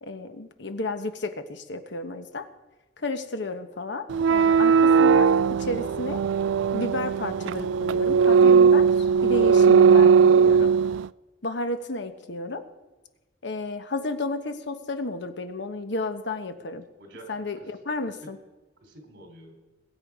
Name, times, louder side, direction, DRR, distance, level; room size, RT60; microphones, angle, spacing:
voice 1, 0.0-2.5 3.0-6.2 6.7-10.7 11.4-12.6 13.4-16.8 17.3-18.4, left 2 dB, 70° left, 8 dB, 1.2 m, -32 dB
sound 1, 4.1-11.1, right 6 dB, 85° right, 0.3 m, -18 dB
voice 2, 17.0-17.7 18.0-18.3 18.8-19.6, right 1 dB, 70° right, 2 dB, 3.5 m, -48 dB
21.5 x 8.6 x 4.9 m, 1.2 s
head